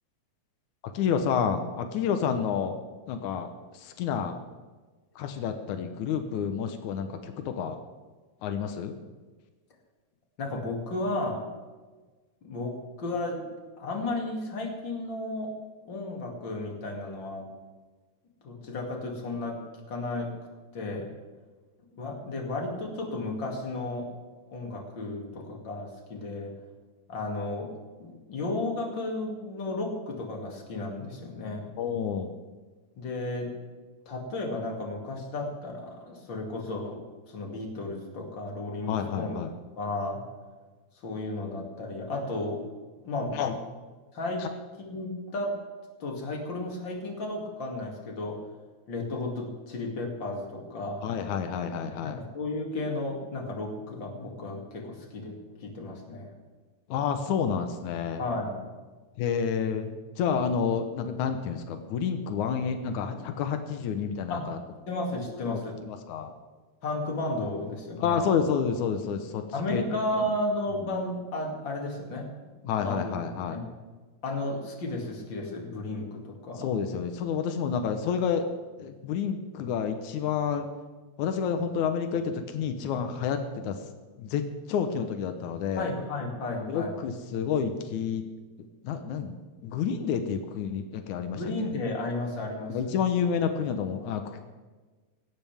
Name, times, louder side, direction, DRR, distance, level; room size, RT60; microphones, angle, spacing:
voice 1, 0.9-2.8 3.1-4.4 5.2-7.8 8.4-9.0 31.8-32.3 38.9-39.5 43.3-43.5 51.0-52.2 56.9-58.2 59.2-59.9 60.2-64.6 65.4-65.6 65.9-66.3 68.0-69.4 69.7-69.8 72.7-73.6 76.6-78.5 78.8-80.7 81.2-83.8 84.2-85.9 86.6-88.2 88.8-91.4 92.7-94.4, left 7 dB, 90° left, 7 dB, 2.4 m, -29 dB
voice 2, 10.4-11.5 12.4-13.4 13.8-15.5 15.9-17.5 18.4-19.6 19.9-20.3 20.7-21.1 21.9-24.1 24.5-26.5 27.1-27.7 28.0-31.7 32.9-33.5 34.1-39.4 39.8-40.2 40.9-42.6 43.0-43.4 44.1-44.5 44.8-45.6 46.0-48.4 48.9-51.1 52.0-56.3 58.2-58.7 64.3-64.5 64.9-65.8 66.8-68.2 69.5-72.3 72.6-73.1 73.5-73.6 74.2-76.7 85.8-87.0 91.3-93.0, left 2 dB, 40° left, 0 dB, 3.2 m, -33 dB
20.0 x 16.5 x 3.5 m, 1.3 s
omnidirectional pair, 3.3 m